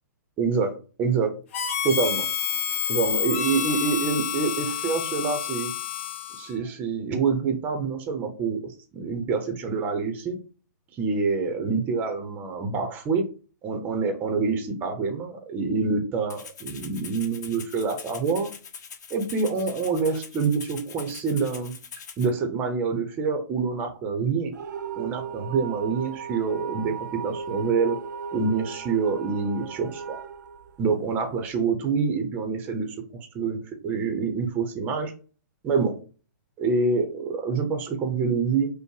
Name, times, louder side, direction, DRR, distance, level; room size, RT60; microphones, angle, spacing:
voice 1, 0.4-0.7 1.0-1.3 1.8-2.3 2.9-5.7 6.4-10.4 11.0-13.3 13.6-18.5 19.1-21.7 22.2-24.5 25.0-27.0 27.2-28.0 28.3-30.2 30.8-32.9 33.3-35.1 35.6-36.0 36.6-38.7, right 4 dB, 15° right, 6 dB, 0.7 m, -26 dB
Harmonica, 1.5-6.6, left 9 dB, 40° left, 0.7 m, -29 dB
Rattle (instrument), 16.3-22.3, left 6 dB, 60° left, 1.1 m, -42 dB
sound 1, 24.5-31.4, right 6 dB, 70° right, 0.5 m, -36 dB
5.5 x 2.1 x 4.6 m, 0.36 s
hypercardioid pair, 165°, 10 cm